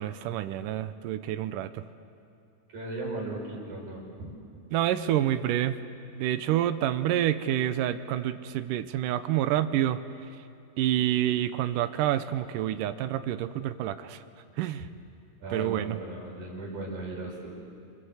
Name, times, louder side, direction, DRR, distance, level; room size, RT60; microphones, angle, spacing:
voice 1, 0.0-1.9 4.7-5.8 6.2-10.0 10.8-14.2 14.6-14.9 15.5-16.0, right 12 dB, 85° right, 11 dB, 2.4 m, -28 dB
voice 2, 2.7-4.3 15.4-17.5, right 2 dB, 65° right, -2 dB, 7.1 m, -37 dB
29.0 x 25.5 x 8.0 m, 2.5 s
omnidirectional pair, 3.7 m